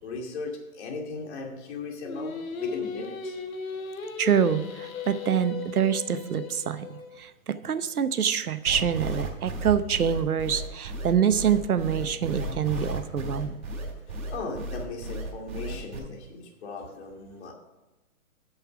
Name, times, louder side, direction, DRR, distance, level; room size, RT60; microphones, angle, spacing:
voice 1, 0.0-3.4 14.3-17.5, left 3 dB, 50° left, 1 dB, 2.4 m, -37 dB
Singing, 2.0-7.2, left 5 dB, 70° left, 1.4 m, -37 dB
voice 2, 4.2-13.6, right 8 dB, 90° right, 13 dB, 0.8 m, -26 dB
sound 1, 8.7-16.0, right 1 dB, 65° right, 3.4 m, -34 dB
8.7 x 6.6 x 5.9 m, 1.1 s
hypercardioid pair, 135°, 43 cm